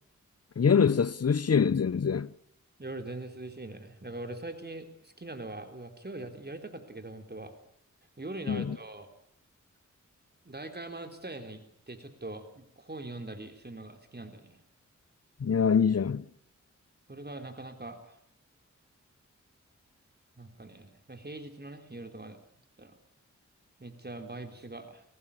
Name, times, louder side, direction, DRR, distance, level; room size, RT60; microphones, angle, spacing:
voice 1, 0.6-2.3 8.5-8.8 15.4-16.2, left 6 dB, 55° left, 0.9 m, -24 dB
voice 2, 2.8-7.5 8.2-9.1 10.4-14.6 17.1-18.2 20.4-22.4 22.8-23.0 23.8-25.0, right 2 dB, 35° right, 3.8 m, -42 dB
23.5 x 18.5 x 8.5 m
cardioid pair, 50°, 30 cm